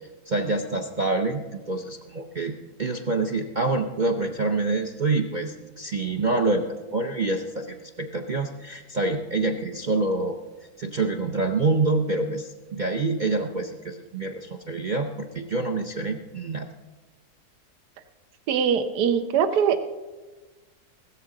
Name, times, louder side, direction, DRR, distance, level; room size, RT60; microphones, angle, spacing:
voice 1, 0.3-10.4 10.8-16.7, right 3 dB, 60° right, 4 dB, 0.5 m, -26 dB
voice 2, 18.5-19.8, right 7 dB, 85° right, 9 dB, 1.3 m, -22 dB
16.0 x 13.5 x 3.8 m, 1.2 s
omnidirectional pair, 1.7 m